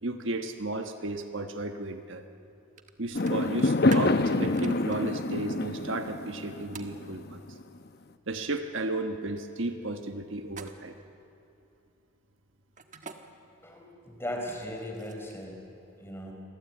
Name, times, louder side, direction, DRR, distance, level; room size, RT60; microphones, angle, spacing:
voice 1, 0.0-2.2 3.0-7.4 8.3-11.0, right 2 dB, 60° right, 6 dB, 1.3 m, -34 dB
sound 1, 2.8-2.9 3.2-5.0 6.7-7.0 10.5-11.0 12.8-13.2 14.5-15.4, right 6 dB, 35° right, 1.4 m, -44 dB
Fireworks, 3.1-7.6, left 2 dB, 45° left, 0.9 m, -27 dB
voice 2, 13.6-15.6 16.0-16.3, left 1 dB, 10° left, 1 dB, 4.5 m, -37 dB
28.5 x 22.5 x 8.6 m, 2.8 s
head